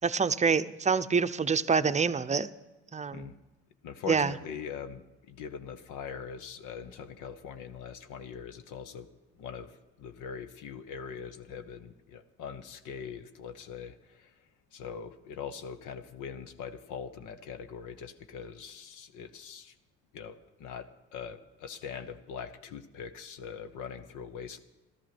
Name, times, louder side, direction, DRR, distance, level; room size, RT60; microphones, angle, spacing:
voice 1, 0.0-2.5 2.9-3.3 4.1-4.3, right 5 dB, 25° right, 12 dB, 0.6 m, -26 dB
voice 2, 3.8-9.1 9.4-14.3 14.7-19.7 20.1-24.6, left 7 dB, 90° left, 10 dB, 1.1 m, -42 dB
14.5 x 12.5 x 6.0 m, 1.1 s
cardioid pair, 90°, 30 cm